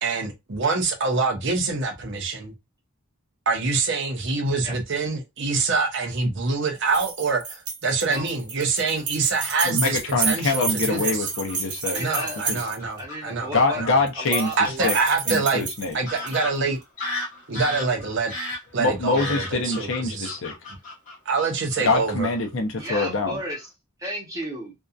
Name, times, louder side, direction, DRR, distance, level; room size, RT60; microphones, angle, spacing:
voice 1, 0.0-2.5 3.5-11.3 11.9-13.9 14.6-15.6 15.9-16.8 17.5-18.3 18.7-20.3 21.3-22.3, right 4 dB, 55° right, 0.6 m, -25 dB
sound 1, 6.9-13.0 14.1-14.6 14.8-16.4, right 5 dB, 85° right, 0.8 m, -30 dB
Fowl / Bird vocalization bird call bird song, 9.4-10.1 10.9-11.6 12.4-12.5 12.8-13.2 14.8-15.0 15.5-15.6 16.1-22.0 22.2-22.5 22.8-23.1 23.4-23.6, left 2 dB, 35° left, 1.1 m, -35 dB
voice 2, 9.6-12.0 12.5-12.6 13.5-14.5 14.8-15.0 15.3-16.0 18.8-20.5 21.8-23.4, left 3 dB, 60° left, 0.6 m, -24 dB
voice 3, 11.8-12.4 13.0-13.8 14.1-15.0 22.8-23.7 24.0-24.7, equal, 15° right, 0.8 m, -33 dB
2.7 x 2.3 x 2.4 m
head